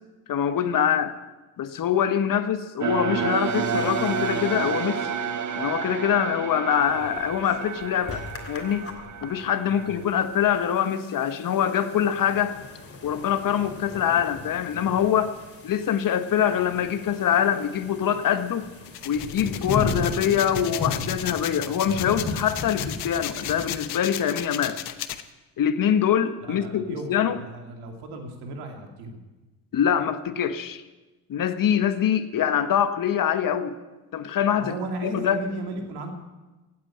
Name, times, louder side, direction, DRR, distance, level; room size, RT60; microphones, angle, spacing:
voice 1, 0.3-1.1 1.6-5.1 5.6-8.9 9.2-12.6 13.0-15.3 15.6-18.7 19.0-24.8 25.6-27.4 29.7-30.8 31.3-33.7 34.1-34.8 35.0-35.4, left 9 dB, 60° left, 11 dB, 1.3 m, -24 dB
sound 1, 2.8-10.0, right 6 dB, 50° right, 1.6 m, -30 dB
sound 2, 6.7-23.8, left 3 dB, 35° left, 3.0 m, -37 dB
sound 3, 18.9-25.2, left 13 dB, 75° left, 1.0 m, -34 dB
voice 2, 26.4-29.2 34.6-36.1, right 2 dB, 85° right, 3 dB, 2.6 m, -35 dB
16.0 x 8.7 x 8.8 m, 1.2 s
supercardioid pair, 75°, 38 cm